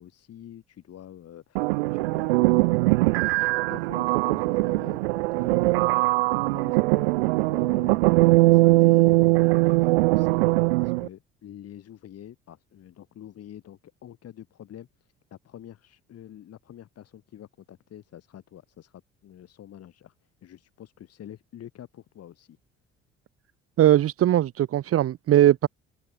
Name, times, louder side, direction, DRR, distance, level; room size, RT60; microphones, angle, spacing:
voice 1, 0.0-20.1 20.4-22.6, left 11 dB, 50° left, 4.4 m, -47 dB
sound 1, 1.6-11.1, right 23 dB, 75° right, 0.9 m, -21 dB
voice 2, 23.8-25.7, right 12 dB, 50° right, 1.2 m, -20 dB
open air
hypercardioid pair, 55°, 31 cm